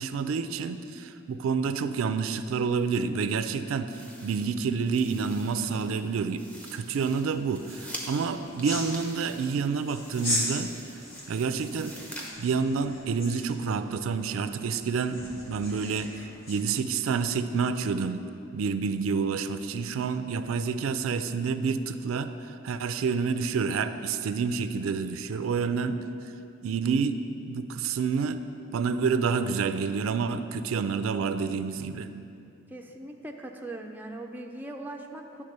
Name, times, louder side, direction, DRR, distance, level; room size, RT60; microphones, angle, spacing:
voice 1, 0.0-6.4 6.7-10.7 11.3-11.9 12.4-18.2 18.5-26.0 26.6-28.4 28.7-32.1, right 5 dB, 80° right, 10 dB, 0.4 m, -28 dB
sound 1, 3.9-12.3, equal, 5° left, 0.8 m, -46 dB
sound 2, 6.9-16.6, left 1 dB, 75° left, 1.7 m, -38 dB
voice 2, 32.7-35.4, right 1 dB, 10° right, 2 dB, 0.4 m, -40 dB
10.0 x 3.7 x 6.5 m, 2.6 s
head